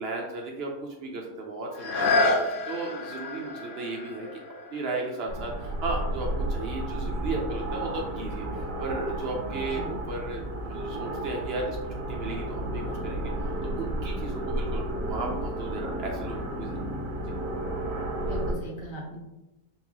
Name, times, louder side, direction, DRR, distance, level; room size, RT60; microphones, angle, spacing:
voice 1, 0.0-4.4 4.7-11.8 12.1-13.3 13.8-16.8, right 3 dB, 60° right, 0 dB, 0.7 m, -35 dB
sound 1, 1.7-7.4 7.9-8.0, left 2 dB, 65° left, 0.5 m, -30 dB
sound 2, 5.3-18.5, right 1 dB, 85° right, 1.2 m, -32 dB
voice 2, 9.5-9.9 18.1-19.2, equal, 85° left, -2 dB, 1.3 m, -39 dB
4.0 x 2.6 x 2.9 m, 1.0 s
omnidirectional pair, 1.4 m